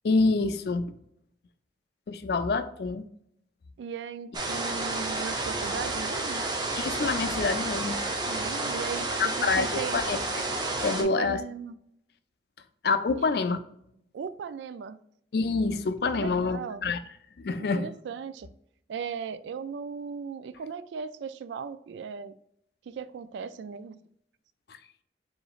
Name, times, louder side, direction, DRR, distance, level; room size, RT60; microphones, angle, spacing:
voice 1, 0.0-0.9 2.1-3.0 6.8-8.0 9.2-10.4 10.8-11.4 12.8-13.6 15.3-17.0 17.4-17.9, left 4 dB, 60° left, 11 dB, 0.4 m, -27 dB
voice 2, 3.8-6.4 8.2-10.0 11.0-11.8 13.2-13.3 14.1-15.0 16.1-16.8 17.6-18.5 18.9-22.3 22.9-24.0, right 6 dB, 80° right, 13 dB, 0.3 m, -37 dB
sound 1, 4.3-11.0, right 2 dB, 25° right, 0.6 m, -31 dB
4.8 x 3.8 x 2.4 m, 0.73 s
head